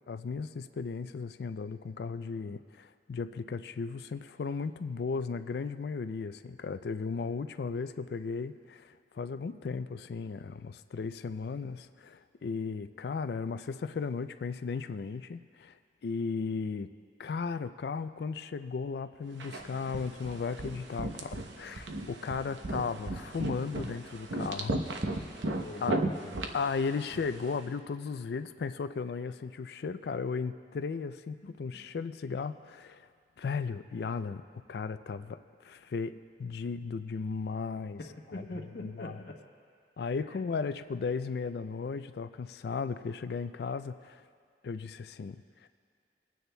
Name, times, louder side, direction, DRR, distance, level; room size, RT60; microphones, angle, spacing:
voice 1, 0.1-15.7 16.0-16.9 17.2-24.8 25.8-26.0 26.5-33.1 33.4-34.4 34.7-38.0 38.8-39.1 40.0-44.2 44.6-45.4, left 5 dB, 65° left, 12 dB, 0.3 m, -35 dB
sound 1, 19.4-27.6, right 2 dB, 90° right, 0.8 m, -36 dB
voice 2, 25.6-26.3 38.0-39.4 40.2-40.4, left 2 dB, 80° left, -1 dB, 1.1 m, -43 dB
26.5 x 9.3 x 2.2 m, 2.1 s
head